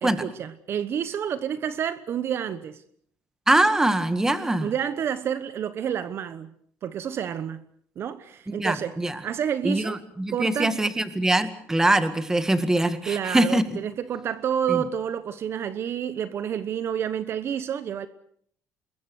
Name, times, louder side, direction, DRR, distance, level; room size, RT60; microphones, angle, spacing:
voice 1, 0.0-2.8 4.6-6.5 6.8-7.6 8.0-8.9 9.2-10.0 10.3-10.8 13.1-18.1, right 8 dB, 45° right, 1.1 m, -29 dB
voice 2, 3.5-4.7 8.5-9.2 9.6-13.6 14.7-14.8, right 1 dB, 10° right, 1.9 m, -23 dB
27.0 x 21.5 x 6.4 m
cardioid pair, 140°, 6 cm